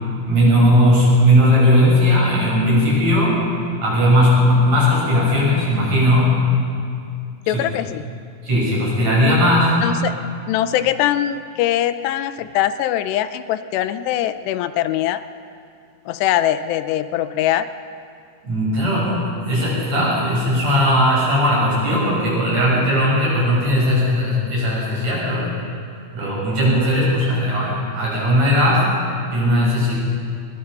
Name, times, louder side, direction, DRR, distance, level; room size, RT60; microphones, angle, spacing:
voice 1, 0.3-3.4 3.8-6.4 7.5-7.6 8.4-9.7 18.4-25.5 26.1-28.9 29.3-30.0, equal, 40° right, -6 dB, 8.6 m, -17 dB
voice 2, 7.5-8.0 9.8-10.2 10.5-15.2 16.1-17.7, left 12 dB, 90° left, 12 dB, 2.9 m, -22 dB
22.5 x 21.5 x 5.5 m, 2.4 s
omnidirectional pair, 4.8 m